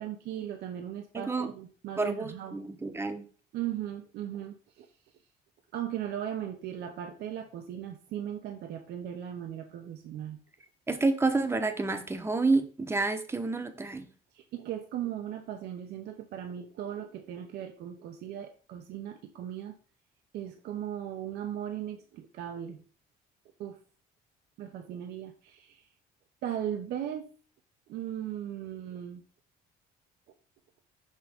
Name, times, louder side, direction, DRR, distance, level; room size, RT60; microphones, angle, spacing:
voice 1, 0.0-2.6 3.5-4.9 5.7-10.4 14.3-19.7 20.3-22.8 23.6-23.8 24.6-25.8 26.4-27.3 27.9-29.2, right 10 dB, 75° right, 5 dB, 0.8 m, -37 dB
voice 2, 1.1-1.5 2.0-3.2 10.9-14.1, right 3 dB, 15° right, 8 dB, 1.0 m, -29 dB
6.3 x 5.4 x 3.6 m, 0.39 s
cardioid pair, 110°, 17 cm